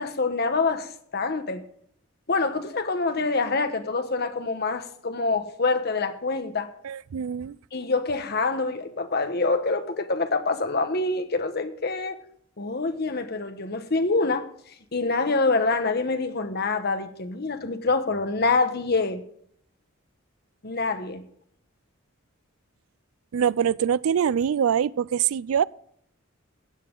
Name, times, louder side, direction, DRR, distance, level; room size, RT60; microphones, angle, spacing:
voice 1, 0.0-1.6 2.3-6.7 7.7-12.2 12.6-14.5 14.9-19.2 20.6-21.2, left 3 dB, 50° left, 1.1 m, -26 dB
voice 2, 6.8-7.6 23.3-25.6, right 8 dB, 85° right, 0.4 m, -24 dB
16.0 x 9.2 x 3.8 m
head